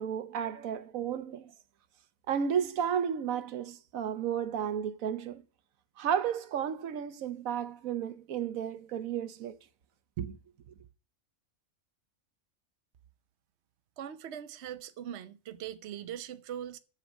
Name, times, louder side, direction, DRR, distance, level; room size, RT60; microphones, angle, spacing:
voice 1, 0.0-1.5 2.3-5.4 6.0-9.6 10.2-10.3, right 8 dB, 90° right, 1.3 m, -33 dB
voice 2, 14.0-16.8, right 10 dB, 60° right, 1.0 m, -41 dB
8.2 x 7.2 x 7.2 m
omnidirectional pair, 1.4 m